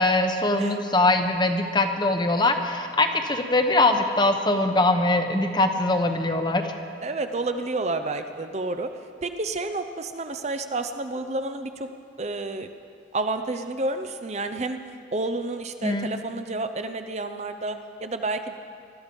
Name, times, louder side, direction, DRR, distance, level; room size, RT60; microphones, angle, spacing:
voice 1, 0.0-6.6 15.8-16.1, left 2 dB, 25° left, 6 dB, 0.9 m, -22 dB
voice 2, 7.0-8.9 9.2-11.9 12.2-12.7 13.1-14.8 15.1-18.5, right 2 dB, 35° right, 8 dB, 0.6 m, -30 dB
19.5 x 13.0 x 5.3 m, 2.3 s
head